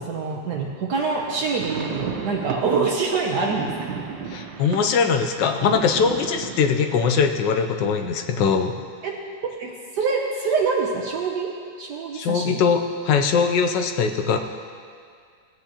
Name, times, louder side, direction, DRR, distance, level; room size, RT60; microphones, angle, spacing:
voice 1, 0.0-4.0 9.0-9.1 9.6-11.5 11.8-12.6, right 4 dB, 65° right, -1 dB, 1.3 m, -25 dB
sound 1, 1.1-7.2, right 6 dB, 90° right, 1.5 m, -35 dB
voice 2, 4.3-8.8 12.1-14.4, left 6 dB, 75° left, 6 dB, 1.3 m, -21 dB
17.0 x 9.2 x 2.9 m, 2.1 s
omnidirectional pair, 2.0 m